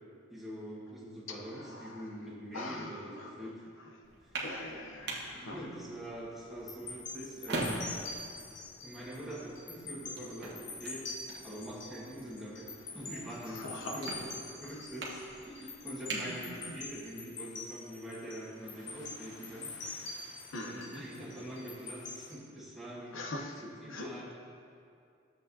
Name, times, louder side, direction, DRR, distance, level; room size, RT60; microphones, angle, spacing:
voice 1, 0.3-3.6 4.2-4.4 5.3-7.9 8.8-20.3 20.6-24.2, equal, ahead, -7 dB, 1.5 m, -44 dB
voice 2, 1.3-2.0 2.5-3.5 4.4-5.8 13.5-14.0 14.6-14.8 16.1-16.8 20.5-21.1 23.1-23.5 23.9-24.2, left 2 dB, 80° left, 3 dB, 0.7 m, -43 dB
sound 1, 4.0-17.1, right 2 dB, 55° right, 1.2 m, -44 dB
sound 2, 6.7-22.3, left 3 dB, 65° left, 1.0 m, -45 dB
12.5 x 7.4 x 2.7 m, 2.4 s
head